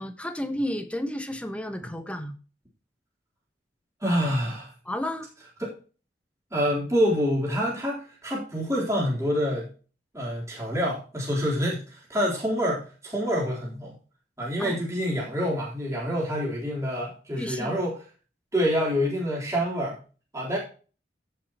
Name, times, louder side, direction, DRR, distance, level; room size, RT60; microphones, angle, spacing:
voice 1, 0.0-2.4 4.8-5.3 14.6-14.8 17.4-17.8, left 1 dB, 5° left, 7 dB, 1.2 m, -32 dB
voice 2, 4.0-4.7 5.6-5.7 6.5-9.7 10.1-13.9 14.4-17.9 18.5-20.0 20.3-20.6, equal, 15° right, -5 dB, 3.7 m, -27 dB
16.5 x 5.7 x 3.0 m, 0.36 s
head